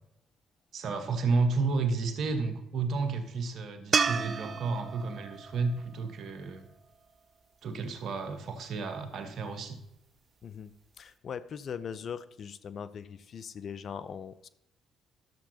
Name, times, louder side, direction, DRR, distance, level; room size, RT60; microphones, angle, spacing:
voice 1, 0.7-6.7 7.6-9.8, right 4 dB, 65° right, 7 dB, 1.2 m, -31 dB
sound 1, 3.9-7.2 10.4-10.5, right 5 dB, 45° right, 0.4 m, -32 dB
voice 2, 10.4-14.5, left 7 dB, 55° left, 15 dB, 0.4 m, -40 dB
12.0 x 7.1 x 2.8 m, 0.80 s
hypercardioid pair, 50°, 0 cm